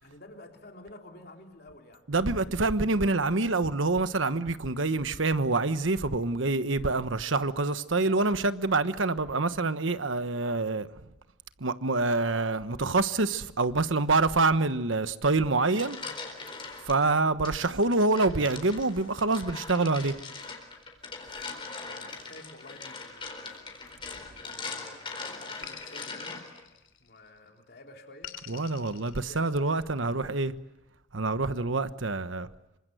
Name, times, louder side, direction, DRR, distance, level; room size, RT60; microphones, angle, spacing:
voice 1, 0.0-2.1 16.8-17.2 21.5-23.7 24.4-26.6 27.0-28.4 29.3-30.2, left 1 dB, 50° left, 3.4 m, -51 dB
voice 2, 2.1-10.9 11.6-16.0 16.8-20.1 28.5-30.5 31.1-32.5, right 3 dB, 80° right, 1.2 m, -26 dB
sound 1, 15.4-17.0 17.4-26.6, left 4 dB, 25° left, 4.2 m, -41 dB
sound 2, 24.1-24.9 25.6-27.3 28.2-29.9, left 9 dB, 70° left, 3.0 m, -47 dB
27.5 x 25.0 x 7.9 m
head